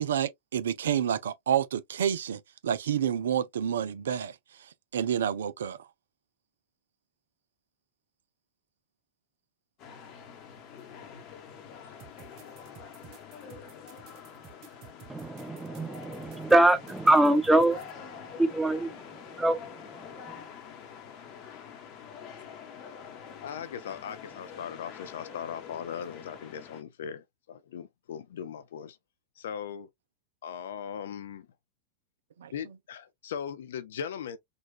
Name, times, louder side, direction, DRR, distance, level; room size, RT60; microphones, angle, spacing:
voice 1, 0.0-5.8 32.4-32.5, right 9 dB, 65° right, 0.4 m, -29 dB
sound 1, 9.8-26.8, left 7 dB, 40° left, 0.9 m, -46 dB
sound 2, 12.0-17.9, right 8 dB, 40° right, 0.8 m, -52 dB
voice 2, 15.1-20.4, right 1 dB, 5° right, 0.5 m, -25 dB
voice 3, 23.4-29.0 29.4-29.9 30.4-31.5 32.5-34.4, left 8 dB, 60° left, 0.5 m, -39 dB
4.0 x 2.4 x 2.4 m
figure-of-eight pair, 90°, 0 cm